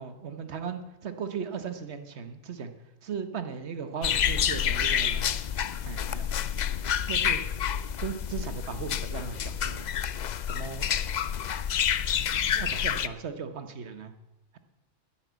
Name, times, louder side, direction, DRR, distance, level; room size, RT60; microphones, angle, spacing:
voice 1, 0.0-2.7 3.0-5.2 5.8-6.3 7.1-7.4 8.0-9.9 10.5-10.9 12.5-14.1, right 6 dB, 60° right, 9 dB, 1.4 m, -37 dB
sound 1, 4.0-13.1, left 9 dB, 60° left, 0.4 m, -28 dB
11.0 x 10.0 x 8.1 m, 0.98 s
omnidirectional pair, 1.3 m